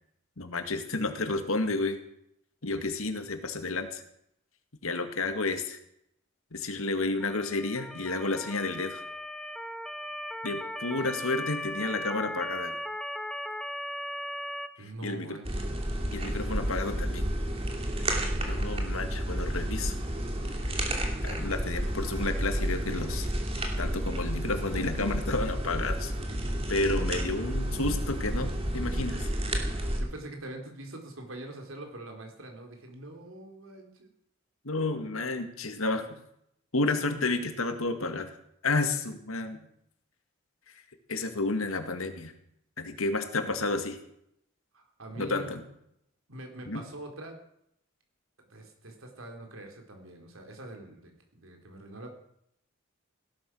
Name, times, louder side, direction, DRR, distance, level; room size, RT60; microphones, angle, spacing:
voice 1, 0.4-2.0 2.6-4.0 4.8-5.8 6.5-9.0 10.4-12.8 14.8-15.4 16.1-17.3 18.5-20.0 20.9-23.3 23.8-26.1 26.7-29.3 34.6-36.1 36.7-38.3 38.6-39.6 41.1-42.3 42.8-44.0 45.2-45.6 46.7-46.8, left 3 dB, 90° left, 7 dB, 2.1 m, -31 dB
Motor vehicle (road) / Siren, 7.2-14.7, left 1 dB, ahead, 0.8 m, -37 dB
voice 2, 14.8-15.6 30.0-34.1 44.7-45.5 46.3-47.3 48.4-52.1, right 1 dB, 85° right, 3 dB, 4.1 m, -44 dB
sound 1, 15.4-30.0, right 1 dB, 30° right, 2.7 m, -31 dB
17.0 x 12.0 x 6.3 m, 0.75 s
head